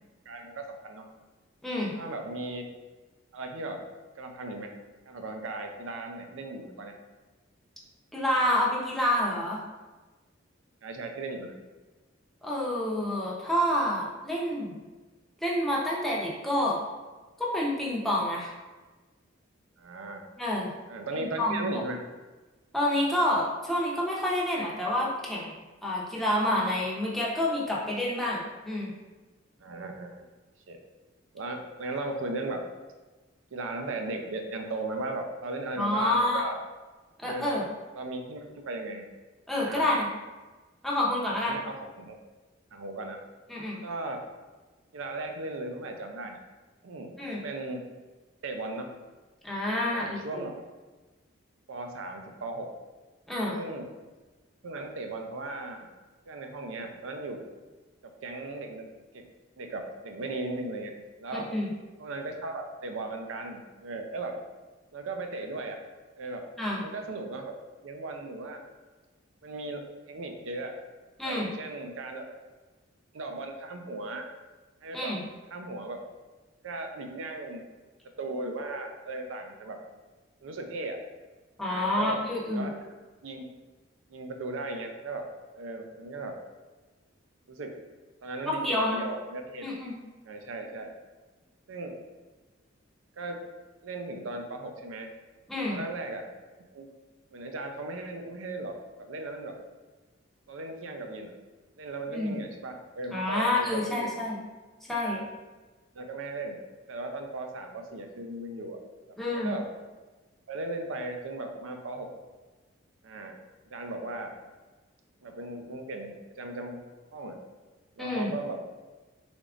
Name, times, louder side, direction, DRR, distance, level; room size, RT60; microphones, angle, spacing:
voice 1, 0.3-1.0 2.0-2.6 3.3-3.8 4.2-4.7 5.1-6.9 10.8-11.5 19.8-20.2 20.9-22.0 29.6-30.3 30.7-30.8 31.3-32.6 33.5-36.6 37.3-37.5 37.9-39.0 39.6-39.9 41.4-42.2 42.7-43.2 43.8-44.2 44.9-46.4 46.8-47.1 47.4-47.8 48.4-48.9 49.9-50.6 51.7-52.7 53.5-53.9 54.6-55.8 56.3-57.4 58.0-58.9 59.1-59.3 59.6-61.5 62.0-64.4 64.9-65.8 66.2-66.5 66.8-67.5 67.8-68.6 69.4-70.7 71.2-72.2 73.1-74.3 74.8-75.1 75.5-76.1 76.6-77.7 78.2-79.8 80.4-81.0 81.7-82.8 83.2-83.5 84.1-85.3 85.5-86.4 87.5-87.7 88.2-89.7 90.2-90.9 91.7-91.9 93.2-93.4 93.8-95.1 95.7-96.3 96.7-96.9 97.3-99.5 100.5-101.3 101.8-104.2 105.0-105.3 105.9-106.6 106.9-108.8 109.3-109.7 110.5-112.1 113.0-113.3 113.7-114.4 115.2-116.8 117.1-117.4 118.0-118.6, right 2 dB, 75° right, 3 dB, 0.5 m, -37 dB
voice 2, 1.6-1.9 8.1-9.6 12.4-14.8 15.4-16.8 17.4-18.5 20.4-20.7 21.2-21.8 22.7-25.5 25.8-28.9 35.8-36.4 37.2-37.6 39.5-40.1 40.8-41.6 43.5-43.8 47.2-47.4 49.4-50.5 53.3-53.6 61.3-61.7 66.6-66.8 71.2-71.5 74.9-75.2 81.6-82.7 88.5-89.0 89.6-89.9 95.5-95.8 102.1-102.4 103.1-104.4 104.9-105.2 109.2-109.5 118.0-118.3, left 1 dB, ahead, -5 dB, 0.6 m, -28 dB
3.9 x 3.5 x 2.4 m, 1.2 s
head